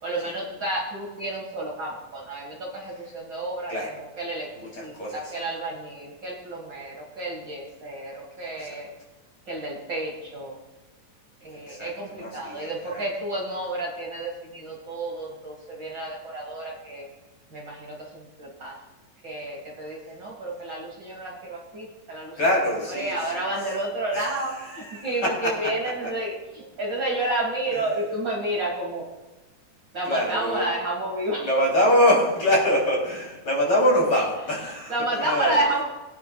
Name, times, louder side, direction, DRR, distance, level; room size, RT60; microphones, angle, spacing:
voice 1, 0.0-8.9 9.5-10.6 11.4-17.1 17.5-18.8 19.2-22.4 22.9-29.1 29.9-31.5 34.9-35.8, right 2 dB, 45° right, -3 dB, 2.2 m, -31 dB
voice 2, 4.6-5.2 11.7-11.9 12.2-13.0 22.4-23.2 24.1-24.2 24.7-25.5 30.1-30.7 31.4-35.6, equal, 45° left, -4 dB, 4.1 m, -24 dB
21.0 x 9.4 x 2.3 m, 1.2 s
omnidirectional pair, 3.3 m